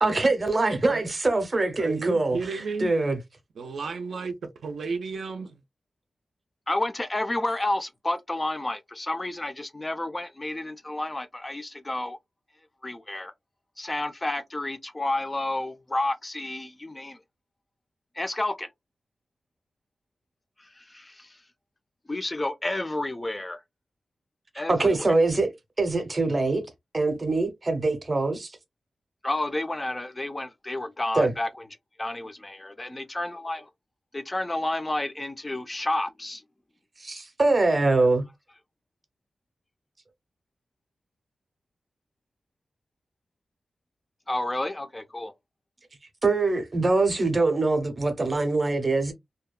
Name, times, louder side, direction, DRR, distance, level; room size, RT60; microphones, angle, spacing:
voice 1, 0.0-3.2 24.6-25.5 25.8-26.6 26.9-28.5 31.2-31.3 37.0-38.2 46.2-49.1, right 3 dB, 25° right, 0.6 m, -23 dB
voice 2, 1.8-2.9 3.6-5.6, right 4 dB, 75° right, 0.4 m, -33 dB
voice 3, 6.7-12.2 12.8-13.3 13.8-17.2 18.2-18.7 20.6-21.4 22.1-23.6 24.6-25.0 29.2-31.5 32.0-33.7 34.1-36.4 44.3-45.3, left 1 dB, 15° left, 0.4 m, -30 dB
2.7 x 2.1 x 2.2 m
wide cardioid pair, 170°, 0 cm